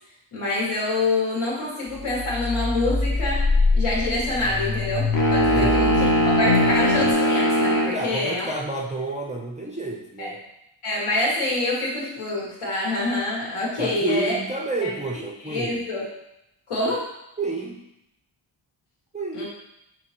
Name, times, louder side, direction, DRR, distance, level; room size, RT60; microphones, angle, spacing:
voice 1, 0.3-8.5 10.2-10.3 10.8-14.3 14.8-14.9 15.5-16.0 16.7-17.1 19.3-19.5, left 2 dB, 90° left, -5 dB, 1.6 m, -26 dB
sound 1, 1.9-7.1, left 3 dB, 65° left, 1.3 m, -24 dB
sound 2, 5.1-8.0, equal, 35° left, 0.6 m, -20 dB
voice 2, 5.5-6.0 7.9-10.4 13.8-15.8 17.4-17.8 19.1-19.4, right 2 dB, 15° right, -2 dB, 0.3 m, -30 dB
5.3 x 2.9 x 2.9 m, 0.84 s
wide cardioid pair, 150°, 50 cm